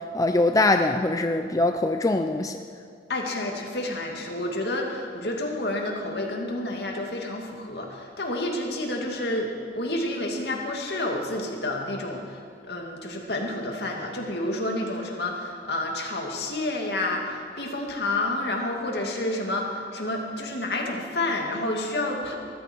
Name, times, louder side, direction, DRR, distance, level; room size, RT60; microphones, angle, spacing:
voice 1, 0.1-2.6, left 2 dB, 20° left, 6 dB, 0.5 m, -22 dB
voice 2, 3.1-12.4 12.7-22.4, left 1 dB, 65° left, 1 dB, 2.4 m, -29 dB
21.5 x 14.5 x 4.6 m, 2.3 s
head